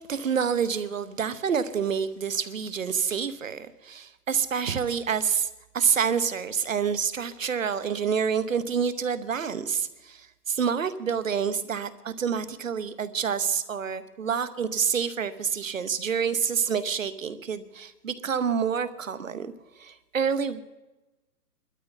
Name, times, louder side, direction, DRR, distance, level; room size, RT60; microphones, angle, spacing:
voice 1, 0.1-19.5 19.8-20.6, right 7 dB, 55° right, 13 dB, 0.9 m, -28 dB
20.0 x 12.5 x 4.0 m, 1.0 s
hypercardioid pair, 180°, 47 cm